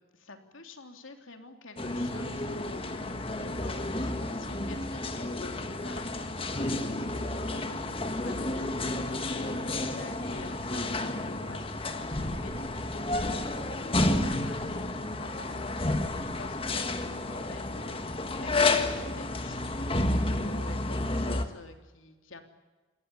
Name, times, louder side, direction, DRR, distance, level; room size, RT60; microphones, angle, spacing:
voice 1, 0.1-22.4, left 2 dB, 85° left, 6 dB, 3.2 m, -49 dB
sound 1, 1.8-21.4, left 2 dB, 30° left, 1.7 m, -31 dB
27.5 x 15.0 x 10.0 m, 1.2 s
head